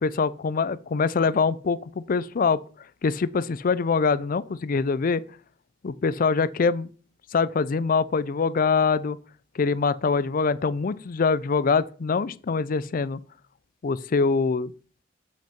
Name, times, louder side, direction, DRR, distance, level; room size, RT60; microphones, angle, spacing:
voice 1, 0.0-2.6 3.0-5.2 5.8-6.9 7.3-9.2 9.5-13.2 13.8-14.7, left 4 dB, 45° left, 0.4 m, -24 dB
7.7 x 6.0 x 4.3 m
head